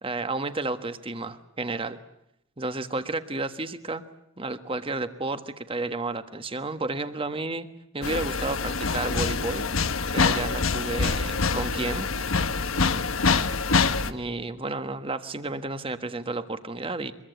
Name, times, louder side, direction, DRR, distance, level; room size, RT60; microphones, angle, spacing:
voice 1, 0.0-2.0 2.6-4.0 4.4-7.7 7.9-9.6 10.1-12.1 14.1-17.1, right 2 dB, 25° right, 10 dB, 1.4 m, -31 dB
sound 1, 8.0-14.1, left 4 dB, 85° left, 1.2 m, -25 dB
24.5 x 22.5 x 8.2 m, 0.83 s
head